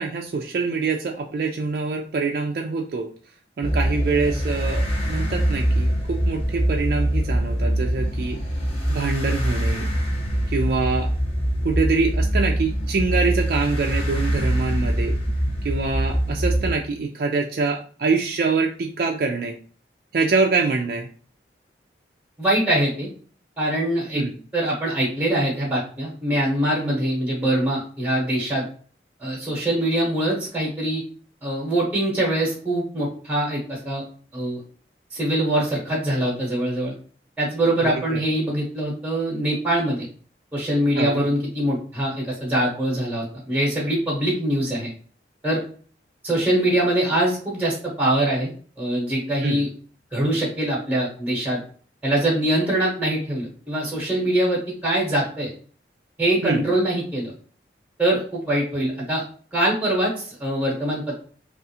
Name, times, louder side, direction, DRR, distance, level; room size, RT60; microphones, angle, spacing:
voice 1, 0.0-3.1 3.6-8.4 8.9-9.9 10.5-11.1 11.6-15.1 15.6-19.5 20.1-21.1 24.1-24.3 37.8-38.3 41.0-41.2 49.4-49.6 56.4-56.6, right 4 dB, 55° right, 1 dB, 0.3 m, -25 dB
sound 1, 3.6-16.7, right 1 dB, 30° left, 0.8 m, -23 dB
voice 2, 22.4-23.1 23.6-24.2 24.5-28.7 29.2-31.0 31.4-34.0 34.3-34.6 35.1-36.9 37.4-40.1 40.5-44.9 45.4-45.6 46.2-48.5 48.8-49.7 50.1-51.6 52.0-55.5 56.2-57.3 58.0-59.2 59.5-61.2, right 1 dB, 10° right, -3 dB, 0.9 m, -23 dB
3.5 x 2.4 x 2.8 m, 0.43 s
head